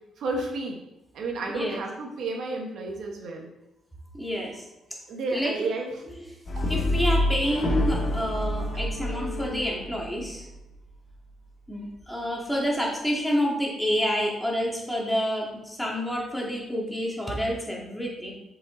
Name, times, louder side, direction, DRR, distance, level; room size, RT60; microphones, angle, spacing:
voice 1, 0.2-0.8 1.1-3.5 5.1-6.1, right 3 dB, 70° right, 2 dB, 1.3 m, -31 dB
voice 2, 4.2-4.7 5.3-5.5 6.7-10.5 11.7-18.3, equal, 5° left, -3 dB, 2.4 m, -28 dB
Brass instrument, 6.5-10.7, left 1 dB, 45° left, 2.0 m, -27 dB
7.5 x 5.5 x 3.9 m, 0.90 s
cardioid pair, 90°, 0 cm